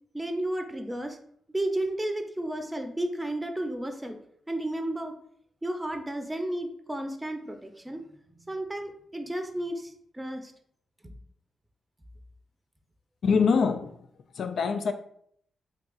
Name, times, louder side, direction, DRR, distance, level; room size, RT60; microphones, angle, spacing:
voice 1, 0.1-1.2 1.5-4.2 4.5-5.1 5.6-8.1 8.5-10.5 11.0-11.1, right 1 dB, 15° right, 0.6 m, -32 dB
voice 2, 13.2-14.0 14.3-14.9, left 5 dB, 65° left, 0.3 m, -24 dB
3.6 x 3.0 x 2.4 m
hypercardioid pair, 40°, 0 cm